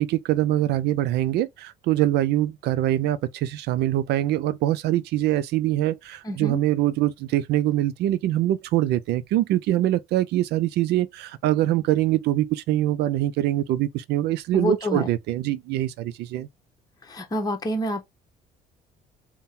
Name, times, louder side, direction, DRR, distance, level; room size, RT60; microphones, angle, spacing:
voice 1, 0.0-16.5, right 14 dB, 75° right, 0.5 m, -24 dB
voice 2, 6.2-6.6 14.5-15.1 17.1-18.0, left 1 dB, 20° left, 1.1 m, -27 dB
3.6 x 2.2 x 4.2 m
cardioid pair, 110°, 17 cm